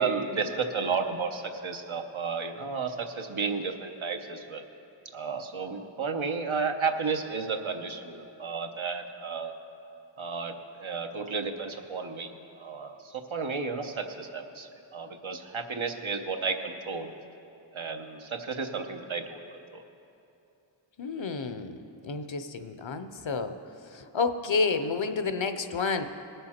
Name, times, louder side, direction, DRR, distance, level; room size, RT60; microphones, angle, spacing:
voice 1, 0.0-4.6 5.1-9.5 10.2-12.3 12.6-17.1 17.7-19.4 19.7-19.8, right 5 dB, 80° right, 5 dB, 0.9 m, -32 dB
voice 2, 21.0-23.6 23.9-26.0, left 4 dB, 70° left, 9 dB, 0.7 m, -30 dB
19.5 x 6.8 x 4.3 m, 2.8 s
wide cardioid pair, 45°, 48 cm